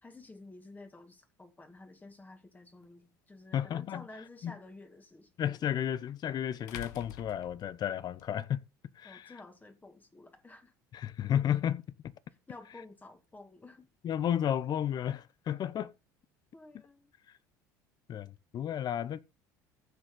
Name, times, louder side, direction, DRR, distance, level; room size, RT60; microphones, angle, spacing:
voice 1, 0.0-5.3 9.0-10.7 12.5-13.9 16.5-17.1, left 2 dB, 20° left, 2.3 m, -52 dB
sound 1, 2.8-2.9 5.5-5.6 6.7-8.3, left 13 dB, 80° left, 0.8 m, -46 dB
voice 2, 3.5-4.1 4.4-4.5 5.4-8.6 9.0-9.3 10.9-12.1 14.0-15.9 18.1-19.2, left 10 dB, 45° left, 0.9 m, -32 dB
15.0 x 6.5 x 3.9 m
hypercardioid pair, 75°, 9 cm